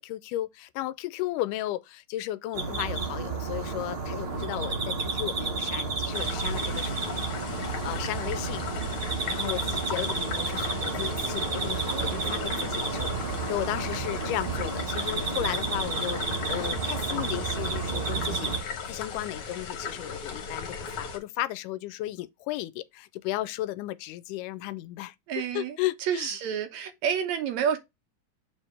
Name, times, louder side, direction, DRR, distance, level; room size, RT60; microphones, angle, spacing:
voice 1, 0.0-7.1 7.5-8.7 9.2-26.4, left 15 dB, 90° left, 2.1 m, -35 dB
sound 1, 2.5-18.6, right 4 dB, 85° right, 0.5 m, -31 dB
sound 2, 6.1-21.2, left 5 dB, 55° left, 1.8 m, -37 dB
voice 2, 11.9-12.3 25.3-25.7 26.1-27.8, right 8 dB, 70° right, 2.0 m, -29 dB
6.6 x 4.5 x 3.3 m
omnidirectional pair, 3.6 m